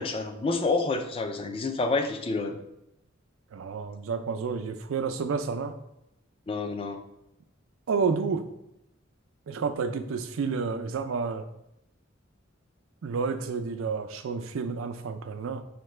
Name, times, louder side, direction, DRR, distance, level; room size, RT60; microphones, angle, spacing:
voice 1, 0.0-2.6 6.5-7.0, left 3 dB, 30° left, 6 dB, 0.4 m, -28 dB
voice 2, 3.5-5.7 7.9-8.5 9.5-11.4 13.0-15.6, right 5 dB, 80° right, 9 dB, 0.4 m, -30 dB
5.6 x 2.2 x 3.1 m, 0.83 s
head